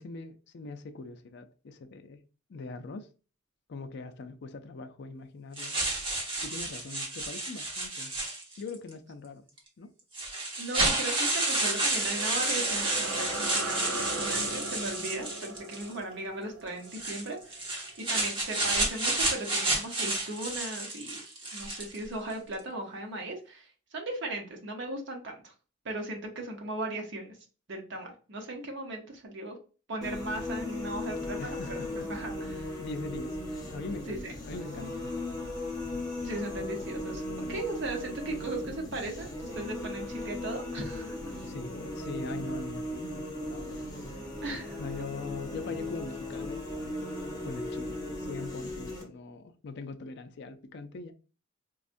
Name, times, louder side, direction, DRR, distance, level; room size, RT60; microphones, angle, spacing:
voice 1, 0.0-2.2 2.5-3.1 3.7-5.8 6.4-8.1 8.6-9.5 9.8-9.9 31.4-32.1 32.6-33.4 33.7-35.4 41.4-43.8 44.8-47.1 47.4-51.1, left 3 dB, 55° left, 0.4 m, -42 dB
sound 1, 5.6-8.7 9.6-9.7 10.1-15.9 16.8-22.0, right 2 dB, 25° right, 0.9 m, -31 dB
voice 2, 10.6-21.2 21.5-25.5 25.8-27.3 27.7-29.5 29.9-31.8 32.1-32.7 34.1-34.3 36.2-37.2 37.5-41.2 44.4-44.8, right 2 dB, 60° right, 0.9 m, -37 dB
sound 2, 11.5-18.3, right 2 dB, 85° right, 0.7 m, -39 dB
sound 3, 30.0-49.0, left 1 dB, 20° left, 0.9 m, -37 dB
4.1 x 2.3 x 2.5 m
head